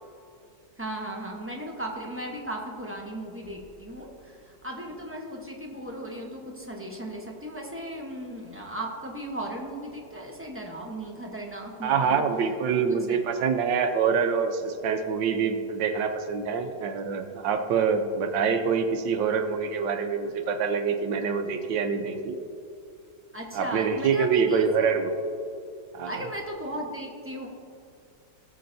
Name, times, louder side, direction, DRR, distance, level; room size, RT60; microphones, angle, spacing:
voice 1, 0.8-12.2 13.1-13.4 23.3-24.9 26.0-27.5, right 1 dB, 10° right, -1 dB, 0.6 m, -36 dB
voice 2, 11.8-22.4 23.5-25.1 25.9-26.3, right 6 dB, 75° right, 6 dB, 1.4 m, -25 dB
18.5 x 7.5 x 2.7 m, 2.5 s
omnidirectional pair, 2.0 m